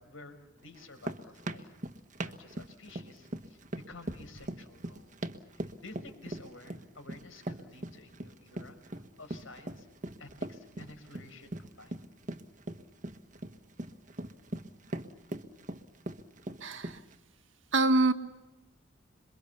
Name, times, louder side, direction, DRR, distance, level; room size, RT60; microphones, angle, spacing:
voice 1, 0.0-1.7 2.2-5.2 5.5-9.9 10.2-12.0, left 2 dB, 85° left, 6 dB, 5.6 m, -51 dB
sound 1, 0.7-17.2, right 1 dB, 40° right, 1.4 m, -40 dB
voice 2, 16.6-17.0 17.7-18.1, right 2 dB, 70° right, 7 dB, 1.8 m, -25 dB
27.0 x 24.0 x 7.0 m, 0.99 s
head